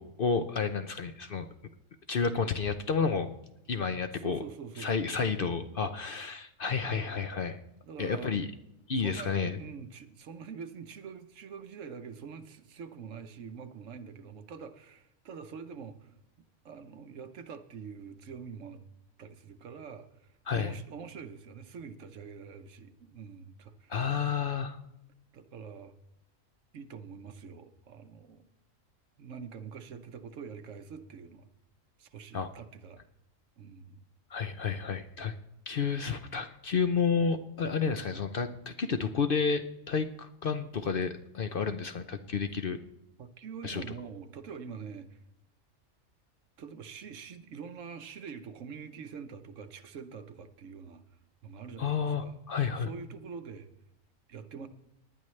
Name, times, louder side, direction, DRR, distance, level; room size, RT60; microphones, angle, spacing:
voice 1, 0.0-1.5 2.1-3.3 3.7-4.4 4.8-7.6 8.0-8.5 8.9-9.6 20.5-20.7 23.9-24.8 32.3-32.5 34.3-35.3 35.7-42.8 43.6-43.8 51.8-52.9, left 5 dB, 55° left, 9 dB, 0.7 m, -30 dB
voice 2, 4.1-5.1 7.8-8.3 9.0-18.8 19.2-24.0 25.3-25.9 26.7-28.4 29.2-31.5 32.0-33.0 33.6-34.0 34.9-35.1 43.2-45.2 46.6-52.4 52.8-53.7 54.3-54.7, right 6 dB, 70° right, 9 dB, 1.2 m, -45 dB
19.0 x 10.5 x 3.2 m, 0.85 s
omnidirectional pair, 1.4 m